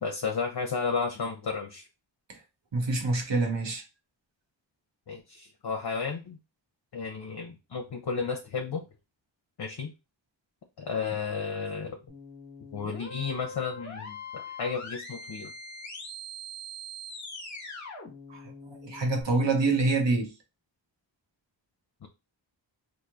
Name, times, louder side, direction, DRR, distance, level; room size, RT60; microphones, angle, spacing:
voice 1, 0.0-1.9 5.1-6.4 6.9-8.8 9.6-9.9 10.8-12.0 12.7-15.5 22.0-22.1, left 5 dB, 60° left, 0.7 m, -33 dB
voice 2, 2.7-3.8 18.3-20.3, right 3 dB, 70° right, 1.1 m, -26 dB
sound 1, 12.1-19.2, left 1 dB, 40° left, 1.2 m, -42 dB
3.0 x 2.5 x 3.7 m
wide cardioid pair, 70°, 45 cm